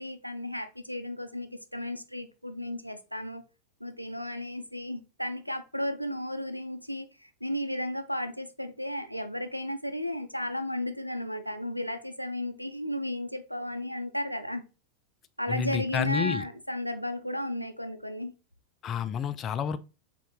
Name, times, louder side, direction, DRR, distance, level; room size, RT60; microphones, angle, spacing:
voice 1, 0.0-3.4 3.8-14.6 15.4-18.3, left 1 dB, 90° left, 0.4 m, -34 dB
voice 2, 15.5-16.4 18.8-19.8, left 7 dB, 30° left, 0.3 m, -29 dB
4.2 x 3.7 x 3.0 m
figure-of-eight pair, 90°, 0 cm